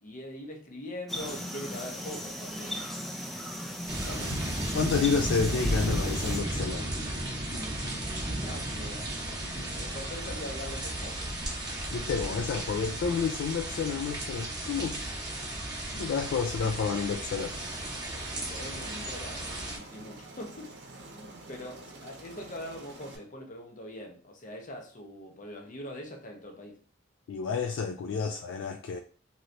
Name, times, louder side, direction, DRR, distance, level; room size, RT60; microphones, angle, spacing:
voice 1, 0.0-2.9 4.1-4.8 8.4-11.3 18.3-20.7 21.0-26.8, left 1 dB, 45° left, 0.7 m, -43 dB
sound 1, 1.1-6.4, equal, ahead, 0.4 m, -37 dB
sound 2, 3.9-19.8, right 1 dB, 20° right, 0.9 m, -34 dB
voice 2, 4.7-6.9 11.9-15.0 15.9-17.6 27.3-29.0, left 5 dB, 75° left, 0.3 m, -30 dB
Aircraft, 17.4-23.2, right 2 dB, 60° right, 0.7 m, -48 dB
3.1 x 2.8 x 2.6 m
head